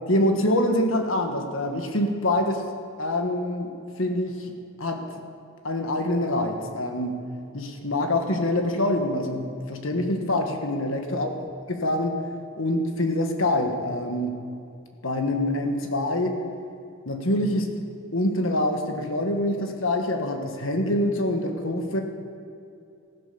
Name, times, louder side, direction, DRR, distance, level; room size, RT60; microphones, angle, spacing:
voice 1, 0.1-2.7 3.0-3.7 4.0-4.5 4.8-5.0 5.6-7.2 7.5-11.4 11.7-12.2 12.6-14.4 15.0-16.4 17.0-17.7 18.1-22.0, left 1 dB, 70° left, 4 dB, 1.6 m, -25 dB
15.5 x 11.0 x 6.9 m, 2.6 s
head